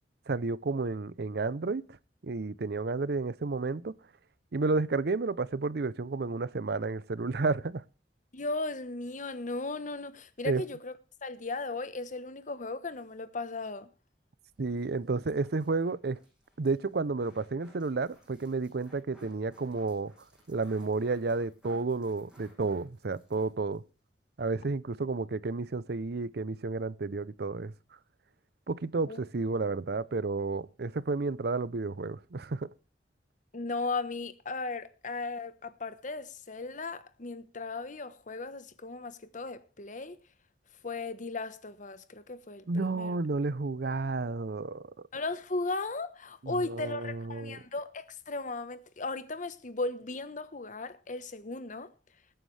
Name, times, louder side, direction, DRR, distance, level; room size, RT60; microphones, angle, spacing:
voice 1, 0.3-2.0 2.2-4.0 4.5-7.8 10.4-10.6 14.6-16.2 16.6-20.1 20.5-23.8 24.4-27.7 28.7-32.7 42.7-44.9 46.4-47.6, right 3 dB, 65° right, 0.6 m, -31 dB
voice 2, 8.3-10.9 11.2-13.9 29.1-29.2 33.5-40.2 40.8-43.2 45.1-51.9, left 3 dB, 45° left, 1.1 m, -36 dB
sound 1, 14.5-23.8 24.1-24.2 24.5-24.6, equal, 5° right, 7.9 m, -60 dB
23.0 x 9.3 x 3.3 m
head